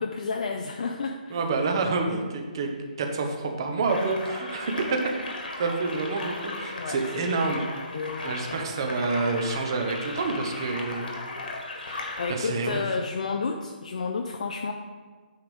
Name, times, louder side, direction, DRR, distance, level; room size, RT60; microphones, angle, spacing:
voice 1, 0.0-1.4 6.7-7.4 7.9-8.4 12.0-14.7, left 4 dB, 50° left, 3 dB, 0.5 m, -31 dB
voice 2, 1.3-2.7 3.0-5.0 5.6-7.6 8.2-11.1 11.8-12.8, right 3 dB, 30° right, 3 dB, 0.8 m, -28 dB
sound 1, 3.9-12.3, left 2 dB, 75° left, 1.7 m, -37 dB
8.9 x 3.5 x 5.3 m, 1.4 s
hypercardioid pair, 175°, 5 cm